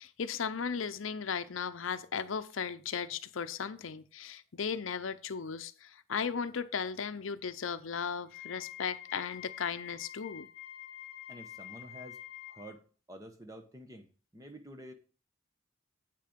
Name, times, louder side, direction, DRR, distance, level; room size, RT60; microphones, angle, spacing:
voice 1, 0.0-10.5, left 6 dB, 75° left, 0.6 m, -36 dB
Wind instrument woodwind instrument, 8.2-12.7, left 12 dB, 50° left, 1.5 m, -47 dB
voice 2, 11.3-12.2 12.5-14.1 14.3-14.9, right 1 dB, 15° right, 1.1 m, -49 dB
8.5 x 6.7 x 5.1 m
head